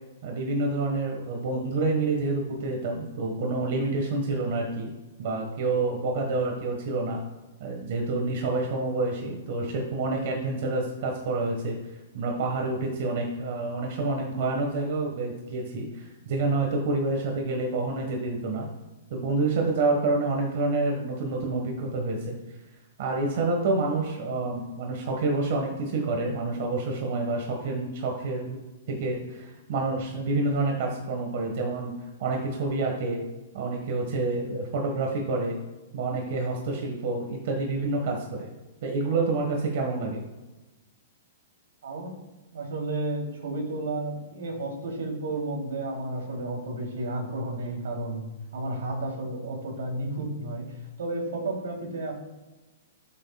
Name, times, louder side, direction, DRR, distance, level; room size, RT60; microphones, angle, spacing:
voice 1, 0.2-4.9 5.2-7.2 7.6-11.8 12.1-18.7 19.1-22.4 23.0-28.6 28.9-31.9 32.2-33.2 33.5-35.6 35.9-38.5 38.8-40.2, right 3 dB, 50° right, 1 dB, 1.5 m, -28 dB
voice 2, 41.8-42.1 42.5-50.6 51.0-52.1, right 2 dB, 80° right, 0 dB, 3.2 m, -32 dB
12.5 x 7.7 x 2.4 m, 1.1 s
hypercardioid pair, 165°, 0 cm